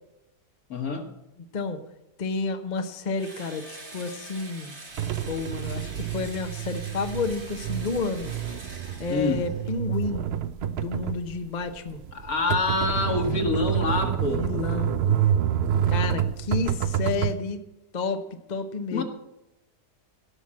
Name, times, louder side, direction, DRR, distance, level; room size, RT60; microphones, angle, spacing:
voice 1, 0.7-1.1 9.1-9.4 12.1-14.5 18.9-19.0, left 3 dB, 60° left, 4 dB, 2.1 m, -26 dB
voice 2, 2.2-4.8 5.3-8.3 9.0-10.3 10.6-12.0 14.2-15.3 15.9-17.6 17.9-18.2 18.5-19.0, left 4 dB, 35° left, 7 dB, 0.8 m, -30 dB
Engine / Drill, 3.2-9.8, right 2 dB, 80° right, 3.7 m, -44 dB
sound 1, 5.0-17.4, right 9 dB, 60° right, 0.6 m, -28 dB
16.5 x 6.0 x 7.5 m, 0.93 s
omnidirectional pair, 1.7 m